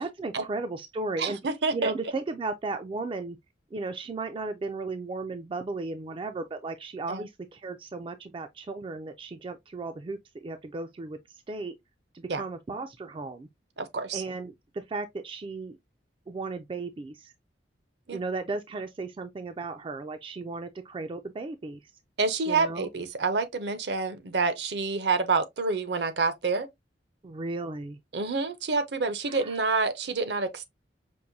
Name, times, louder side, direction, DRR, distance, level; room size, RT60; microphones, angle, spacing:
voice 1, 0.0-1.4 1.7-3.4 3.7-11.8 12.1-13.5 14.1-15.8 16.3-17.3 18.1-21.8 22.5-22.9 27.2-28.0 29.3-29.6, right 3 dB, 30° right, 0.3 m, -35 dB
voice 2, 1.2-1.9 7.1-7.2 12.3-12.4 13.8-14.2 18.1-18.2 22.2-26.7 28.1-30.6, right 4 dB, 65° right, 0.6 m, -28 dB
5.4 x 2.5 x 2.6 m
head